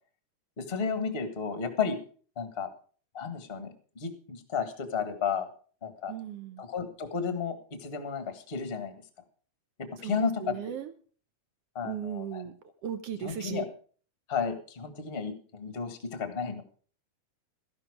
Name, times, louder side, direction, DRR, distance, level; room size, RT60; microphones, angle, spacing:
voice 1, 0.6-2.0 2.3-2.7 3.1-5.5 5.8-6.1 6.6-8.9 9.8-10.5 11.7-12.4 13.2-13.7 14.3-16.6, left 6 dB, 35° left, 9 dB, 1.0 m, -33 dB
voice 2, 6.1-6.6 10.0-10.9 11.8-12.5 12.8-13.6, right 9 dB, 75° right, 12 dB, 1.4 m, -36 dB
13.0 x 11.5 x 4.8 m, 0.42 s
omnidirectional pair, 3.7 m